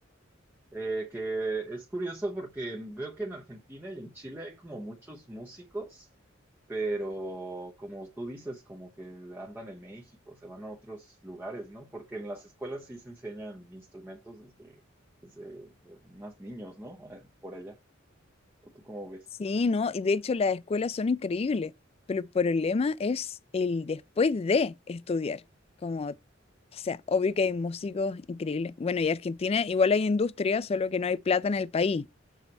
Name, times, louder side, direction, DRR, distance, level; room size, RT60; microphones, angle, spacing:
voice 1, 0.7-6.1 6.7-14.8 15.2-17.8 18.7-19.3, right 2 dB, 10° right, 0.8 m, -38 dB
voice 2, 19.4-21.7 22.1-25.4 25.8-26.1 26.8-32.1, left 4 dB, 30° left, 0.3 m, -27 dB
6.2 x 4.0 x 4.2 m
head